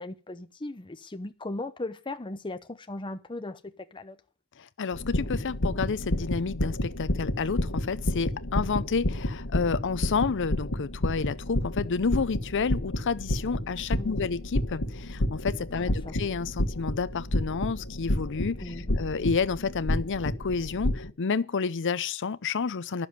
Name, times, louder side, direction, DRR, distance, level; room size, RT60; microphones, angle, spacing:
voice 1, 0.0-4.2 13.9-14.3 15.8-16.1 18.6-19.0, left 2 dB, 20° left, 0.8 m, -38 dB
voice 2, 4.6-23.1, left 5 dB, 55° left, 0.6 m, -30 dB
sound 1, 4.9-21.1, left 1 dB, 75° left, 1.5 m, -30 dB
11.0 x 7.0 x 9.4 m
head